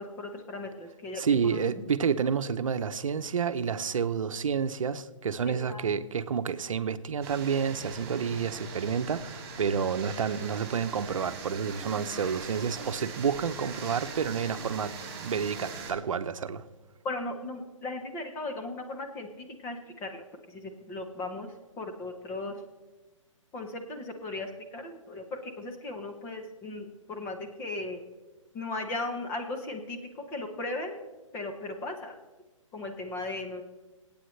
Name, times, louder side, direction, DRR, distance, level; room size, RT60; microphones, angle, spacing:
voice 1, 0.0-1.6 5.5-5.8 17.0-20.2 20.5-20.6 20.9-21.5 21.8-22.5 23.5-28.0 28.5-31.0 31.3-32.1 32.7-33.6, left 2 dB, 15° left, 0.9 m, -37 dB
voice 2, 1.1-15.0 15.2-16.6, right 6 dB, 75° right, 0.8 m, -29 dB
sound 1, 7.2-15.9, right 5 dB, 30° right, 2.9 m, -41 dB
25.0 x 8.7 x 3.2 m
hypercardioid pair, 160°, 17 cm